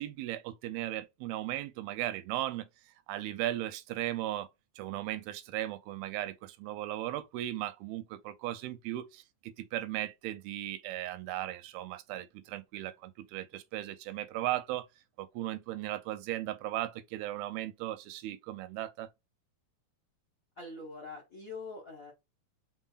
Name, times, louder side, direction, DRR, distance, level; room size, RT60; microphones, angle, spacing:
voice 1, 0.0-2.7 3.1-4.5 4.8-14.9 15.2-19.1, right 14 dB, 90° right, 2.4 m, -37 dB
voice 2, 20.6-22.1, left 3 dB, 75° left, 0.7 m, -44 dB
5.4 x 3.7 x 2.3 m
omnidirectional pair, 4.3 m